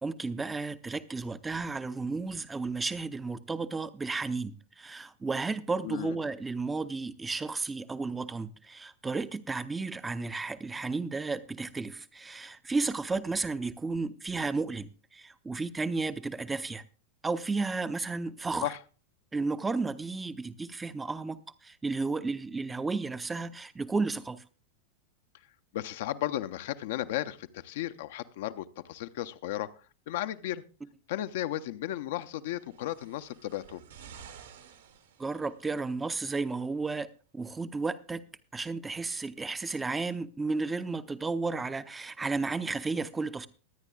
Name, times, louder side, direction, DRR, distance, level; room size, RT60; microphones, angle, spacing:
voice 1, 0.0-16.8 17.2-18.7 19.3-24.4 35.2-37.1 37.3-38.2 38.5-43.5, right 3 dB, 10° right, 0.5 m, -33 dB
voice 2, 5.8-6.2 18.6-18.8 25.7-29.7 30.1-30.6 31.1-33.8, left 13 dB, 55° left, 0.5 m, -34 dB
sound 1, 32.5-35.8 36.8-36.9, right 7 dB, 70° right, 1.5 m, -52 dB
23.0 x 9.6 x 2.3 m
figure-of-eight pair, 90°, 0 cm